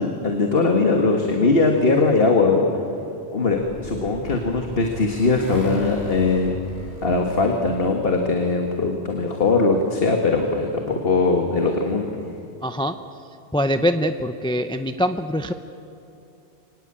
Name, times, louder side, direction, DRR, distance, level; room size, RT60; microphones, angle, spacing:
voice 1, 0.0-2.7 3.3-6.5 7.0-12.1, left 3 dB, 60° left, 3 dB, 1.8 m, -20 dB
Motorcycle, 3.1-8.1, left 1 dB, 75° left, 5.4 m, -39 dB
voice 2, 12.6-12.9 13.5-15.5, equal, 5° left, 8 dB, 0.5 m, -23 dB
24.5 x 18.5 x 8.7 m, 2.7 s
omnidirectional pair, 1.1 m